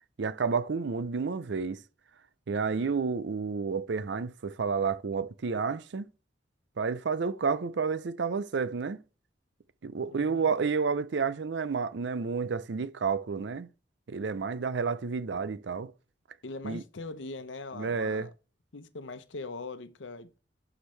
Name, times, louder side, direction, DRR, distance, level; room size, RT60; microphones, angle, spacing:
voice 1, 0.2-1.8 2.5-6.1 6.8-9.0 9.8-13.7 14.1-15.9 16.6-16.8 17.7-18.3, right 5 dB, 70° right, 0.5 m, -30 dB
voice 2, 10.1-10.4 16.4-18.3 18.7-20.4, left 3 dB, 90° left, 0.9 m, -41 dB
11.5 x 5.0 x 3.3 m
head